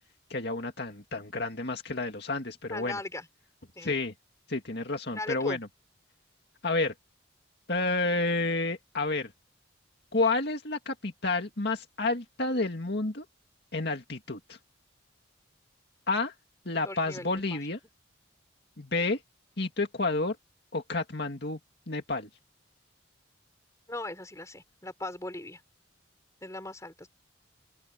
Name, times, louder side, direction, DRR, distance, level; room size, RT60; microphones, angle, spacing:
voice 1, 0.3-3.0 3.8-4.1 4.5-5.7 6.6-6.9 7.7-9.3 10.1-13.3 13.7-14.6 16.1-16.3 16.7-17.8 18.8-19.2 19.6-20.4 20.7-21.6 21.9-22.3, left 3 dB, 55° left, 2.2 m, -30 dB
voice 2, 2.7-3.3 3.7-4.0 5.1-5.6 16.8-17.6 23.9-25.6 26.4-27.1, left 2 dB, 15° left, 4.9 m, -39 dB
open air
head